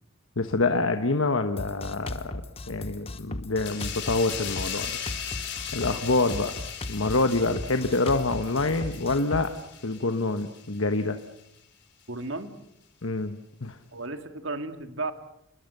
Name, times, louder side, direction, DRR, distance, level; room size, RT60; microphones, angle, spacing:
voice 1, 0.4-2.3 2.7-4.9 5.7-6.6 6.9-9.5 9.8-11.2 13.0-13.8, left 3 dB, 70° left, 7 dB, 1.2 m, -26 dB
Drum kit, 1.6-9.5, left 1 dB, 25° left, 1.1 m, -37 dB
sound 1, 3.6-10.8 11.2-11.4, left 9 dB, 50° left, 4.1 m, -38 dB
voice 2, 12.1-12.5 13.9-15.1, right 2 dB, 60° right, 8 dB, 2.1 m, -34 dB
28.5 x 21.5 x 6.8 m, 0.79 s
head